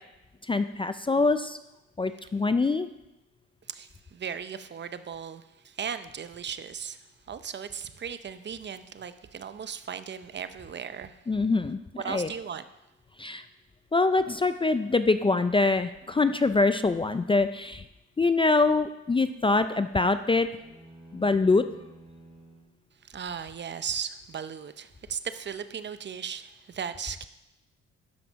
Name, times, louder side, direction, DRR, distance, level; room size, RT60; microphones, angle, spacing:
voice 1, 0.5-1.6 2.0-2.9 11.3-12.3 13.2-13.4 13.9-17.8 18.2-20.5 21.1-21.6, left 3 dB, 15° left, 0.4 m, -24 dB
voice 2, 3.7-7.0 7.3-11.1 12.0-12.6 23.0-27.3, right 7 dB, 35° right, 0.7 m, -37 dB
sound 1, 20.5-22.8, right 2 dB, 20° right, 3.6 m, -51 dB
12.5 x 5.9 x 5.2 m
cardioid pair, 90°, 30 cm